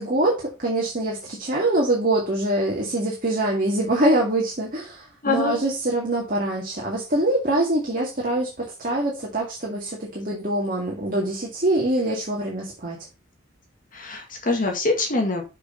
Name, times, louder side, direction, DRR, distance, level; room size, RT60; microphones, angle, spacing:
voice 1, 0.0-13.0, right 1 dB, 40° right, -2 dB, 2.0 m, -24 dB
voice 2, 5.2-5.6 13.9-15.4, left 2 dB, 40° left, 2 dB, 1.9 m, -24 dB
6.6 x 6.1 x 5.3 m, 0.29 s
head